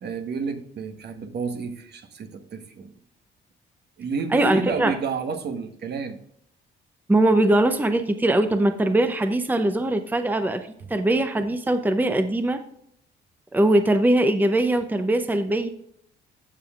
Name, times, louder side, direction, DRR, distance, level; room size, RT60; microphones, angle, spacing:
voice 1, 0.0-2.9 4.0-6.2, right 4 dB, 55° right, 7 dB, 1.2 m, -30 dB
voice 2, 4.3-4.9 7.1-12.6 13.5-15.7, right 1 dB, 10° right, 8 dB, 0.7 m, -21 dB
15.5 x 5.5 x 2.4 m, 0.71 s
cardioid pair, 90°, 20 cm